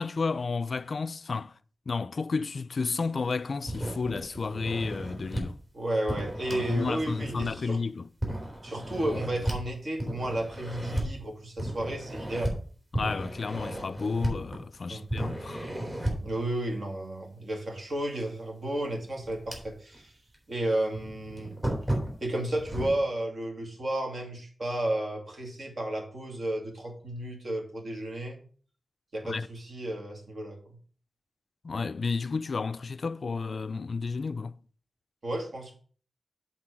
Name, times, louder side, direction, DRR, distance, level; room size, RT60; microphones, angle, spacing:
voice 1, 0.0-1.5 1.9-5.6 6.5-8.1 12.9-15.7 29.2-29.5 31.6-34.6, left 4 dB, 55° left, 0.3 m, -32 dB
sound 1, 3.6-5.4 6.1-7.7 8.2-9.6 10.0-11.1 11.6-12.5 12.9-14.8 15.1-16.3 18.2-18.3 18.8-20.0 20.3-20.4 20.9-23.0, right 1 dB, 25° right, 3.0 m, -34 dB
voice 2, 5.7-7.8 8.6-12.5 14.9-15.0 16.2-20.1 20.5-21.5 22.2-28.4 29.1-30.6 35.2-35.7, right 1 dB, 55° right, 2.3 m, -32 dB
7.7 x 4.1 x 6.0 m
wide cardioid pair, 125°, 0 cm